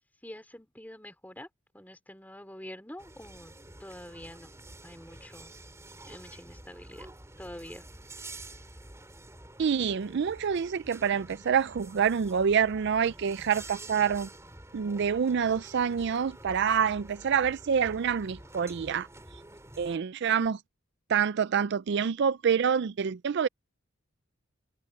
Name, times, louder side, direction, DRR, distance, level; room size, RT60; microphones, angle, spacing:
voice 1, 0.2-1.5 1.7-3.5 3.8-4.5 4.8-5.5 6.0-7.1 7.4-7.8, left 1 dB, 10° left, 4.4 m, -46 dB
sound 1, 3.0-20.0, right 2 dB, 15° right, 3.7 m, -49 dB
voice 2, 9.6-14.3 14.7-19.1 19.8-20.6 21.1-23.5, right 7 dB, 55° right, 0.4 m, -27 dB
head